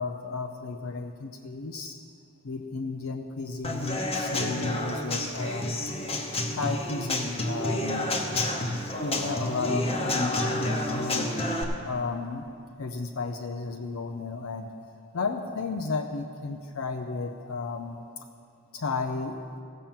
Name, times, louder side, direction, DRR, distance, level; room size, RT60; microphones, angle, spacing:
voice 1, 0.0-2.0 2.4-5.8 6.6-8.1 8.6-11.3 11.8-12.5 12.8-14.7 15.1-18.3 18.7-19.4, left 4 dB, 70° left, 5 dB, 0.6 m, -33 dB
Human voice / Acoustic guitar / Drum, 3.6-11.6, left 1 dB, 25° left, 0.9 m, -29 dB
15.0 x 5.8 x 7.3 m, 2.4 s
head